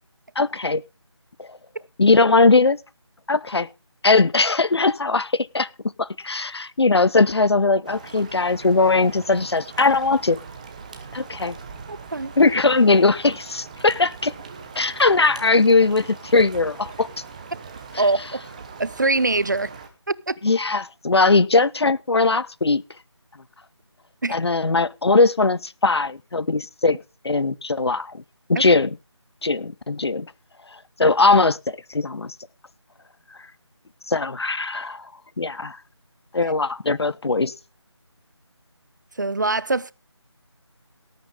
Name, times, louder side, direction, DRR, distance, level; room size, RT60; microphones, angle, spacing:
voice 1, 0.4-0.8 1.4-1.6 2.0-2.8 3.3-3.7 4.0-5.7 6.0-10.4 11.1-11.6 12.4-14.3 14.8-17.1 20.4-22.8 24.3-27.0 27.2-28.2 28.5-29.0 29.4-30.3 31.0-31.6 31.9-32.3 34.1-35.1 35.4-35.8 36.3-37.5, left 3 dB, 60° left, 0.7 m, -19 dB
sound 1, 7.8-19.9, right 5 dB, 15° right, 1.1 m, -41 dB
voice 2, 11.9-12.3 18.0-18.4 18.8-19.7 20.1-20.4 24.2-24.4 39.2-39.9, right 3 dB, 40° right, 0.5 m, -23 dB
18.0 x 9.0 x 3.6 m
figure-of-eight pair, 165°, 15 cm